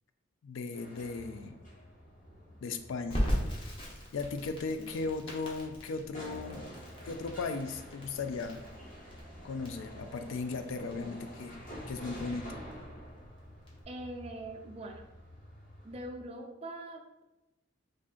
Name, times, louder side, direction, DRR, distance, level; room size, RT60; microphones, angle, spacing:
voice 1, 0.4-1.6 2.6-3.3 4.1-6.6 7.1-8.6 9.4-11.6 11.9-12.5, left 4 dB, 70° left, 8 dB, 0.3 m, -37 dB
sound 1, 0.7-16.1, equal, 40° left, 1.3 m, -49 dB
Crackle, 3.1-13.8, equal, 25° left, 0.8 m, -39 dB
voice 2, 13.9-15.1 15.8-17.2, right 1 dB, 30° right, 3 dB, 0.4 m, -43 dB
3.2 x 2.5 x 3.7 m, 0.97 s
head